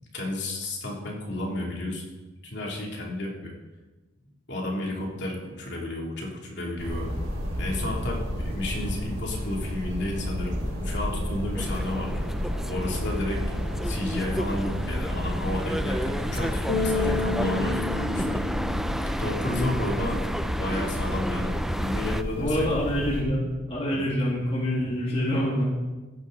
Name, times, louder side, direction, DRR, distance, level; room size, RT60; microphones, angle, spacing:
voice 1, 0.1-2.1 2.4-3.5 4.5-7.1 7.6-12.2 12.7-13.4 13.8-18.4 19.2-22.7 23.9-24.0, left 1 dB, 60° left, -2 dB, 3.0 m, -32 dB
sound 1, 6.8-23.2, equal, 60° right, 5.3 m, -31 dB
sound 2, 11.6-22.2, equal, ahead, 0.3 m, -32 dB
Bass guitar, 16.7-19.8, left 4 dB, 75° left, 1.9 m, -31 dB
voice 2, 22.4-25.6, equal, 30° left, -4 dB, 2.1 m, -26 dB
16.0 x 10.5 x 4.0 m, 1.2 s
head